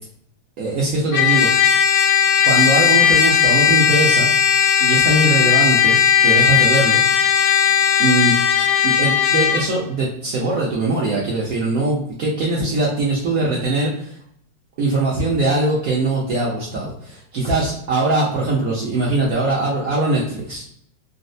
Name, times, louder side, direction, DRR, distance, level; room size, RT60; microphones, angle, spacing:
voice 1, 0.6-1.7 2.4-4.3 4.8-7.0 8.0-8.3 8.8-14.2 14.8-20.6, right 2 dB, 75° right, -6 dB, 0.8 m, -21 dB
Trumpet, 1.1-9.7, left 7 dB, 75° left, 1.1 m, -16 dB
4.1 x 2.0 x 2.6 m, 0.68 s
omnidirectional pair, 2.4 m